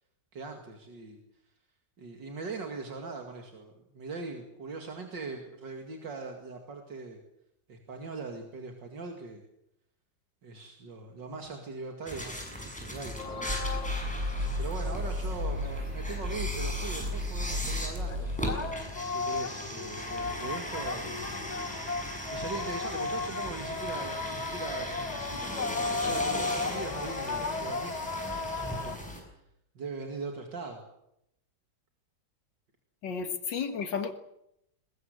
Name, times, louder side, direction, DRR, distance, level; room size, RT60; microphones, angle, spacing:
voice 1, 0.3-1.2 2.0-7.2 7.7-9.4 10.4-13.7 14.6-18.3 19.0-21.4 22.3-28.1 28.6-29.1 29.7-30.8, right 4 dB, 80° right, 3 dB, 2.9 m, -41 dB
sound 1, 12.1-29.2, equal, 5° left, 6.9 m, -39 dB
sound 2, 13.2-29.0, left 4 dB, 35° left, 0.7 m, -36 dB
sound 3, 13.5-18.7, left 1 dB, 35° right, 3.3 m, -33 dB
voice 2, 33.0-34.2, left 6 dB, 85° left, 9 dB, 2.5 m, -33 dB
21.0 x 21.0 x 8.0 m, 0.79 s
omnidirectional pair, 1.9 m